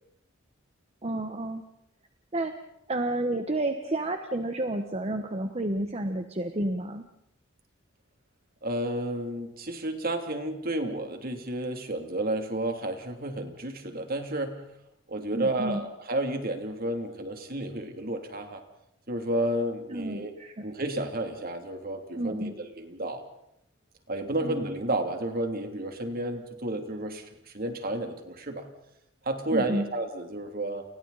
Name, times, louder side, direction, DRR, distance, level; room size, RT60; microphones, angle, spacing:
voice 1, 1.0-1.6 2.3-2.5 2.9-7.0 15.3-15.8 19.9-20.7 22.1-22.5 24.4-24.6 29.5-29.8, right 1 dB, 30° right, 6 dB, 1.3 m, -30 dB
voice 2, 8.6-14.6 15.1-18.6 19.1-20.3 20.6-23.2 24.1-28.7 29.2-30.8, right 1 dB, 50° right, 5 dB, 3.0 m, -31 dB
29.5 x 29.5 x 4.2 m, 0.78 s
head